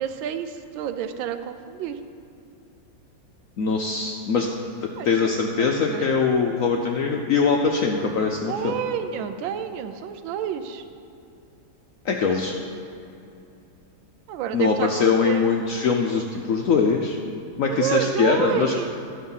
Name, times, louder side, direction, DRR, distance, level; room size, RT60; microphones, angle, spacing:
voice 1, 0.0-2.0 5.0-6.1 8.5-10.8 14.3-15.5 17.7-18.9, right 9 dB, 85° right, 9 dB, 1.4 m, -29 dB
voice 2, 3.6-4.5 4.8-8.8 12.0-12.5 14.5-17.2 17.6-18.7, left 5 dB, 70° left, 1 dB, 0.8 m, -22 dB
11.5 x 6.4 x 5.5 m, 2.7 s
omnidirectional pair, 2.1 m